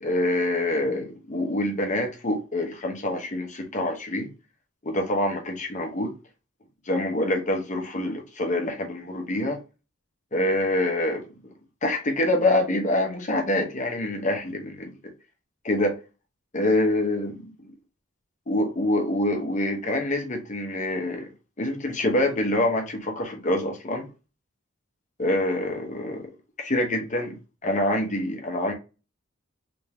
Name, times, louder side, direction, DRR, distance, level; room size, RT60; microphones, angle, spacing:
voice 1, 0.0-4.3 4.8-6.1 6.9-9.6 10.3-11.2 11.8-14.9 15.6-16.0 16.5-17.7 18.5-21.3 21.6-24.1 25.2-26.3 26.6-27.4 27.6-28.7, left 1 dB, 40° left, 0.9 m, -26 dB
3.4 x 2.8 x 3.4 m
head